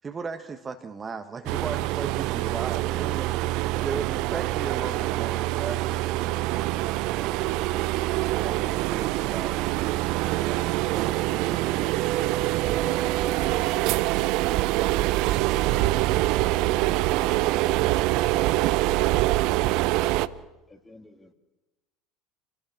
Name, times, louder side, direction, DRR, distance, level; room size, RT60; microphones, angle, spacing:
voice 1, 0.0-7.7 8.4-9.7 10.4-10.8, right 5 dB, 30° right, 6 dB, 1.7 m, -37 dB
sound 1, 1.5-20.3, right 17 dB, 60° right, 0.7 m, -25 dB
voice 2, 10.8-10.9, equal, ahead, 5 dB, 3.0 m, -47 dB
voice 3, 19.9-21.3, left 2 dB, 15° left, 6 dB, 2.6 m, -50 dB
27.5 x 17.5 x 7.4 m, 1.1 s
hypercardioid pair, 70°, 0 cm